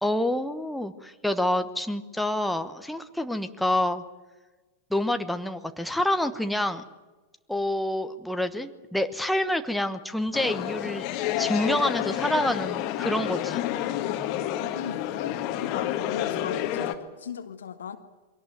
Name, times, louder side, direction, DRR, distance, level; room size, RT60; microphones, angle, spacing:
voice 1, 0.0-4.0 4.9-6.8 7.5-11.1 11.4-13.6, left 1 dB, ahead, 7 dB, 1.2 m, -27 dB
sound 1, 10.3-16.9, left 12 dB, 40° left, 1.8 m, -29 dB
voice 2, 14.7-18.0, left 7 dB, 65° left, 8 dB, 1.5 m, -38 dB
23.5 x 17.5 x 9.2 m, 1.2 s
figure-of-eight pair, 90°, 0 cm